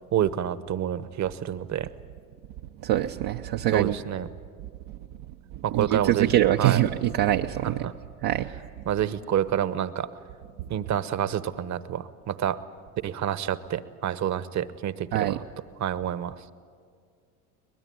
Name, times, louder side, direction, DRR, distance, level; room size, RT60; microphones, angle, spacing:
voice 1, 0.1-1.9 3.7-4.3 5.6-6.3 6.6-6.8 7.8-7.9 8.9-10.1 10.7-12.6 13.0-15.4 15.8-16.3, right 10 dB, 35° right, 15 dB, 1.1 m, -28 dB
voice 2, 2.8-4.0 5.7-7.9 8.2-8.5 15.1-15.4, right 13 dB, 55° right, 3 dB, 0.8 m, -24 dB
23.0 x 20.5 x 9.5 m, 2.2 s
hypercardioid pair, 75°, 46 cm